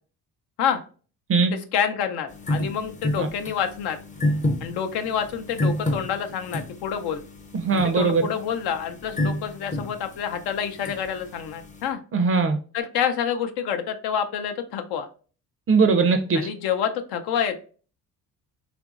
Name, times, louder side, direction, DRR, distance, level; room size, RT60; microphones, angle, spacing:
voice 1, 1.5-4.0 4.6-7.2 7.7-12.0 12.7-15.1 16.3-17.6, left 8 dB, 75° left, 7 dB, 0.6 m, -28 dB
sound 1, 2.3-11.9, left 1 dB, 20° left, 0.5 m, -30 dB
voice 2, 7.5-8.2 12.1-12.6 15.7-16.5, right 4 dB, 35° right, 7 dB, 0.4 m, -20 dB
2.9 x 2.5 x 2.3 m, 0.38 s
supercardioid pair, 65°, 40 cm